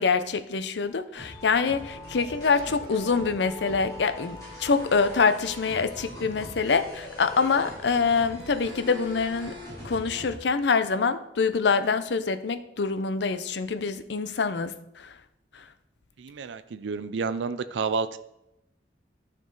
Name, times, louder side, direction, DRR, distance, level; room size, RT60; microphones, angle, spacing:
voice 1, 0.0-9.5 9.8-15.1 15.5-15.6, left 5 dB, 70° left, 10 dB, 0.6 m, -25 dB
sound 1, 1.2-10.4, left 1 dB, 20° left, 3.1 m, -41 dB
voice 2, 16.2-18.2, right 5 dB, 80° right, 12 dB, 0.4 m, -30 dB
12.0 x 4.5 x 3.9 m, 0.84 s
head